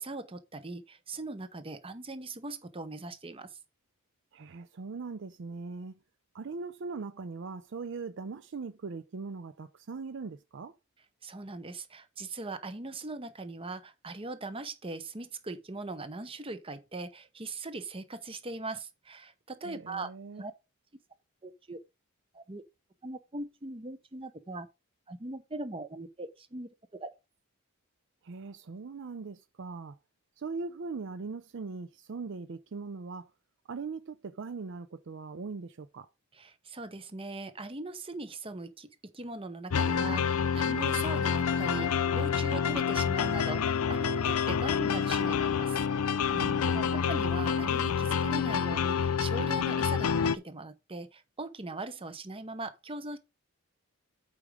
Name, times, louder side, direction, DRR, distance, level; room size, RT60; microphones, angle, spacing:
voice 1, 0.0-3.5 11.2-20.1 20.4-20.5 21.4-21.8 22.3-22.6 23.0-24.7 25.1-26.7 27.0-27.1 36.4-38.9 39.1-45.8 46.2-46.3 46.7-53.2, right 2 dB, 25° right, 0.8 m, -40 dB
voice 2, 4.3-6.0 6.3-10.8 19.6-20.5 28.2-30.0 30.4-33.3 33.7-36.1 46.3-47.0, right 4 dB, 55° right, 0.5 m, -40 dB
sound 1, 39.7-50.4, left 7 dB, 85° left, 0.6 m, -28 dB
8.4 x 5.0 x 4.9 m
head